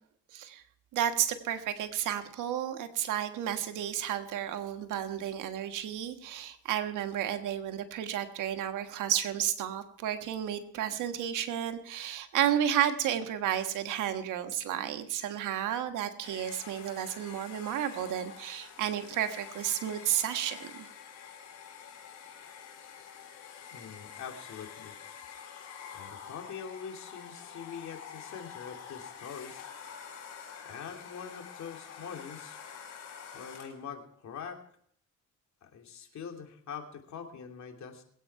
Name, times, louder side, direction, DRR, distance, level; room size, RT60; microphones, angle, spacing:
voice 1, 0.3-0.6 0.9-20.9, right 10 dB, 85° right, 7 dB, 1.4 m, -32 dB
Domestic sounds home sounds, 16.2-33.9, left 7 dB, 90° left, 4.3 m, -47 dB
voice 2, 23.7-24.9 25.9-29.7 30.6-32.6 33.3-34.6 35.6-38.0, left 7 dB, 65° left, 3 dB, 2.8 m, -44 dB
21.5 x 8.7 x 4.7 m, 0.63 s
cardioid pair, 90°, 30 cm